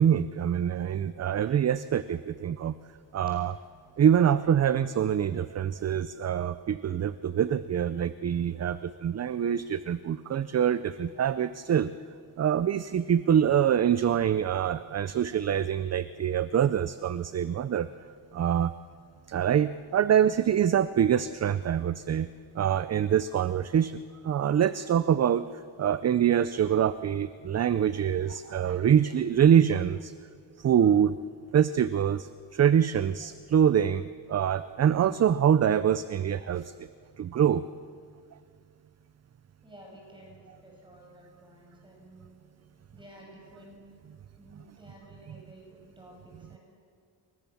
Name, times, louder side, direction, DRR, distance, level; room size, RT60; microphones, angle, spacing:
voice 1, 0.0-2.7 3.1-3.6 4.0-11.9 12.4-17.9 18.3-18.7 19.3-22.3 22.5-25.4 25.8-30.1 30.6-31.2 31.5-36.9 37.2-37.6 45.3-45.4, right 9 dB, 35° right, 14 dB, 0.6 m, -25 dB
voice 2, 39.6-42.3 42.9-43.8 44.4-46.6, right 1 dB, 10° right, -1 dB, 7.0 m, -52 dB
28.5 x 23.5 x 7.2 m, 2.2 s
cardioid pair, 140°, 43 cm